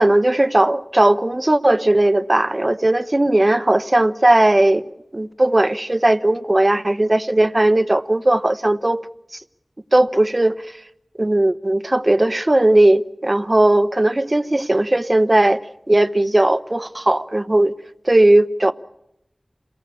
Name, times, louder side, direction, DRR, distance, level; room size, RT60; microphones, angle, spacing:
voice 1, 0.0-4.8 5.1-9.0 9.3-9.4 9.9-10.6 11.2-15.6 15.9-17.7 18.0-18.7, right 1 dB, 35° right, 0.9 m, -17 dB
27.5 x 18.5 x 8.5 m
wide cardioid pair, 55°, 0 cm